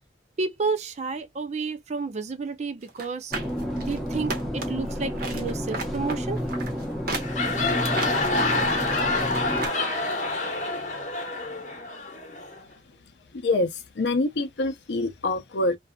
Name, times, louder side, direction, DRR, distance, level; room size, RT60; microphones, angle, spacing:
voice 1, 0.4-3.3 3.8-6.4, right 4 dB, 40° right, 0.4 m, -31 dB
sound 1, 2.9-4.9 5.2-9.8 10.1-10.2, right 3 dB, 55° right, 0.9 m, -35 dB
sound 2, 3.3-9.7, equal, ahead, 0.8 m, -30 dB
sound 3, 7.1-12.6, left 2 dB, 40° left, 0.9 m, -27 dB
voice 2, 14.0-15.8, left 2 dB, 65° left, 0.6 m, -25 dB
2.7 x 2.3 x 2.2 m
head